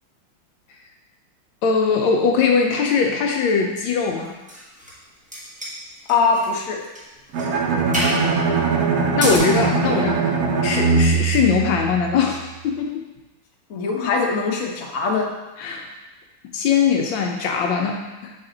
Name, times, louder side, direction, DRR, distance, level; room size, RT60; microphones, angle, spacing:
voice 1, 1.6-4.3 9.1-10.2 10.6-13.0 15.6-15.9 16.5-18.3, left 5 dB, 75° left, 1 dB, 1.3 m, -21 dB
sound 1, 3.9-5.0 5.3-6.5 6.8-7.0 7.3-7.5 7.9-8.2 9.0-9.4, equal, 5° right, 0.8 m, -29 dB
voice 2, 6.1-6.8 13.7-15.3, left 4 dB, 55° left, -1 dB, 1.0 m, -21 dB
Bowed string instrument, 7.3-12.4, right 4 dB, 65° right, 1.0 m, -21 dB
6.0 x 4.2 x 3.8 m, 1.1 s
omnidirectional pair, 2.2 m